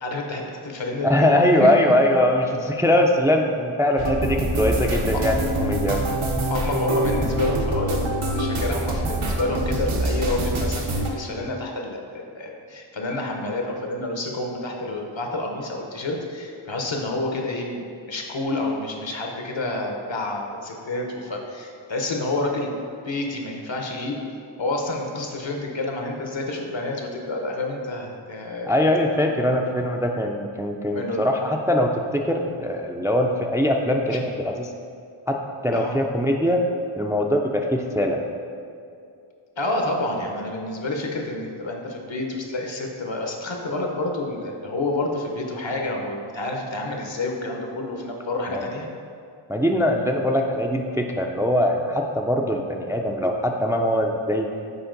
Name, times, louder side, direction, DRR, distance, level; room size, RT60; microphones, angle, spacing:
voice 1, 0.0-1.3 1.6-1.9 5.1-5.2 6.5-22.7 23.0-24.2 24.6-28.7 29.2-29.3 30.9-31.2 34.1-34.2 35.7-36.0 39.6-48.9, left 2 dB, 65° left, 1 dB, 1.0 m, -29 dB
voice 2, 1.0-6.0 28.7-34.7 35.3-35.4 35.6-36.6 36.9-38.2 48.5-48.6 49.5-54.5, left 1 dB, 5° right, 2 dB, 0.3 m, -22 dB
sound 1, 4.0-11.1, right 1 dB, 75° right, 0.9 m, -25 dB
6.9 x 4.4 x 3.9 m, 2.5 s
wide cardioid pair, 50°, 50 cm